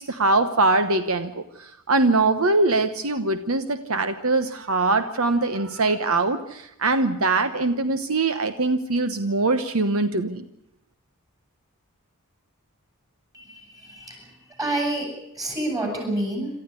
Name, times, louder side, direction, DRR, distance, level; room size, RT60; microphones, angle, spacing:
voice 1, 0.0-10.4, right 3 dB, 65° right, 10 dB, 1.1 m, -22 dB
voice 2, 13.3-14.2 14.6-15.1 15.4-16.5, right 1 dB, 15° right, 2 dB, 7.4 m, -28 dB
27.5 x 14.0 x 9.8 m, 0.82 s
head